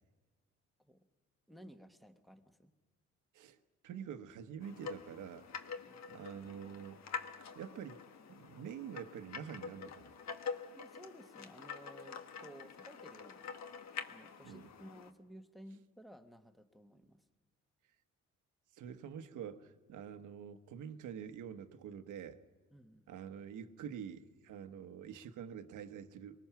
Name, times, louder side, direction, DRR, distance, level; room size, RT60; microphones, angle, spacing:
voice 1, 1.5-2.7 5.8-6.0 10.4-13.5 14.1-17.2 22.7-23.1, equal, ahead, 7 dB, 1.4 m, -56 dB
voice 2, 3.8-5.5 6.1-7.1 7.5-10.2 14.4-14.7 18.7-22.4 23.1-26.4, right 8 dB, 80° right, 9 dB, 1.2 m, -47 dB
sound 1, 4.6-15.1, left 6 dB, 60° left, 1.4 m, -46 dB
23.5 x 19.5 x 5.9 m, 1.4 s
cardioid pair, 90°, 30 cm